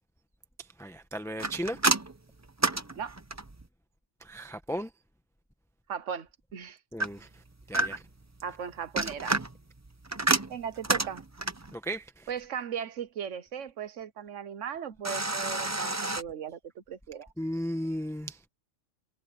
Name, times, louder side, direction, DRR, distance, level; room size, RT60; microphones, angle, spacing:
voice 1, 0.8-1.8 4.2-4.9 6.9-7.4 7.7-8.0 11.7-12.3 17.4-18.5, equal, ahead, 1.1 m, -35 dB
sound 1, 1.4-3.7 7.0-8.2 8.8-11.7 15.0-16.2, right 2 dB, 15° right, 0.7 m, -30 dB
voice 2, 5.9-6.8 8.4-9.4 10.5-11.2 12.3-17.3, right 8 dB, 75° right, 1.3 m, -37 dB
omnidirectional pair, 1.3 m